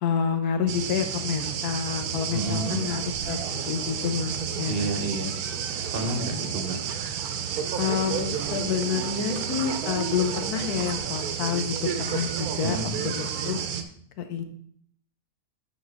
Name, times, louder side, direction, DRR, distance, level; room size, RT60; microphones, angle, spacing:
voice 1, 0.0-3.0 3.3-4.9 7.8-12.8 13.0-13.6 14.2-14.4, left 7 dB, 85° left, 7 dB, 1.3 m, -28 dB
sound 1, 0.7-13.8, right 8 dB, 80° right, 1.1 m, -31 dB
voice 2, 2.3-2.9 4.7-5.4 5.9-7.0 12.6-13.1, right 2 dB, 45° right, 3 dB, 1.0 m, -30 dB
9.5 x 4.5 x 3.4 m, 0.63 s
omnidirectional pair, 1.6 m